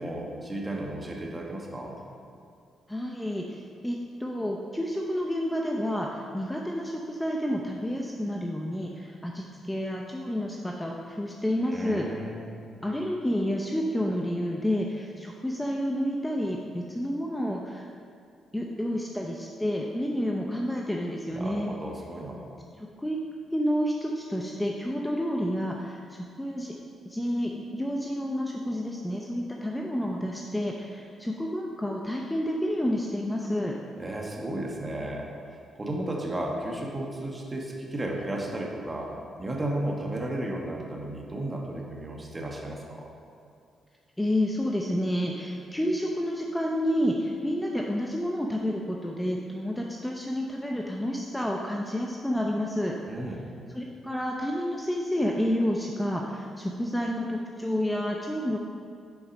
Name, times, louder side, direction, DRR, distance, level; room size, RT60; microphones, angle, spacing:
voice 1, 0.0-2.0 11.6-12.5 21.3-22.4 34.0-35.3 35.7-43.1 53.1-53.4, right 1 dB, 20° right, -1 dB, 1.3 m, -34 dB
voice 2, 2.9-12.1 12.8-17.9 18.5-21.7 23.0-23.2 23.5-26.7 27.1-33.7 44.2-52.9 53.7-58.6, equal, 10° left, -1 dB, 0.6 m, -29 dB
7.2 x 4.7 x 5.1 m, 2.4 s
cardioid pair, 90°, 0 cm